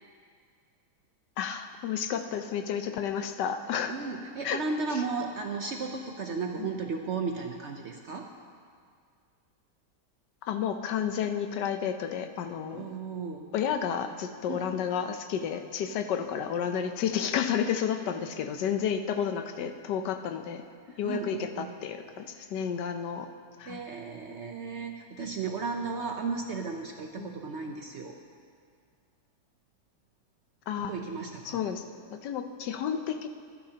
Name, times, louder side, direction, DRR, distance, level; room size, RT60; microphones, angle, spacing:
voice 1, 1.4-4.0 4.4-4.6 4.9-5.0 6.6-6.7 10.4-12.9 13.5-20.6 21.0-23.3 23.6-23.8 27.2-27.3 30.7-30.9 31.4-33.3, left 8 dB, 80° left, 8 dB, 1.3 m, -31 dB
voice 2, 3.9-8.2 12.7-13.5 14.5-14.6 21.0-21.7 23.7-28.1 30.8-31.6, right 4 dB, 60° right, 3 dB, 0.8 m, -34 dB
24.0 x 9.9 x 2.9 m, 2.1 s
omnidirectional pair, 1.8 m